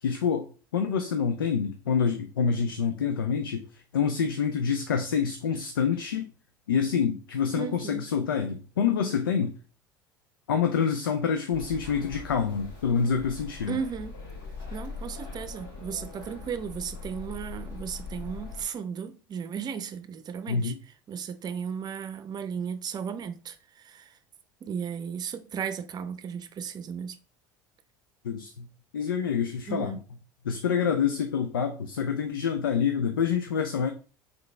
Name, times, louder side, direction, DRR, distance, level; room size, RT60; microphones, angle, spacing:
voice 1, 0.0-6.3 6.7-9.6 10.5-13.8 20.5-20.8 28.2-28.7 28.9-30.0 30.4-33.9, left 6 dB, 85° left, 0.4 m, -27 dB
voice 2, 7.6-8.1 13.7-14.2 14.7-20.7 21.1-24.2 24.6-27.2 29.7-30.0, right 7 dB, 35° right, 0.6 m, -35 dB
sound 1, 11.5-18.6, left 4 dB, 70° left, 2.2 m, -41 dB
3.9 x 3.3 x 3.2 m
hypercardioid pair, 70°, 11 cm